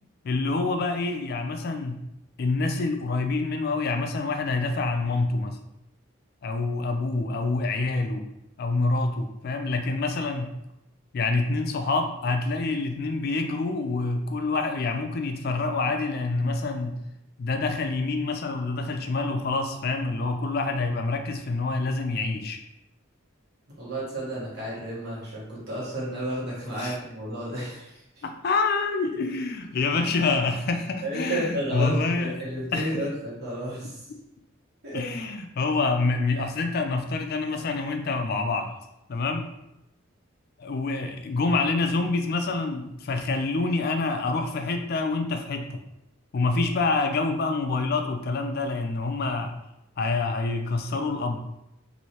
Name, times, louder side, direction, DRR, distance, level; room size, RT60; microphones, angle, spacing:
voice 1, 0.2-2.0 2.4-5.6 6.4-8.2 8.6-10.6 11.1-17.0 17.4-22.6 26.8-27.0 28.2-32.4 32.7-33.0 34.9-38.7 39.1-39.5 40.6-45.8 46.3-49.6 50.0-51.4, left 3 dB, 50° left, 5 dB, 0.3 m, -27 dB
voice 2, 23.8-28.2 31.0-34.1 34.8-35.1, right 1 dB, 55° right, -7 dB, 1.3 m, -32 dB
3.1 x 2.6 x 2.8 m, 0.85 s
head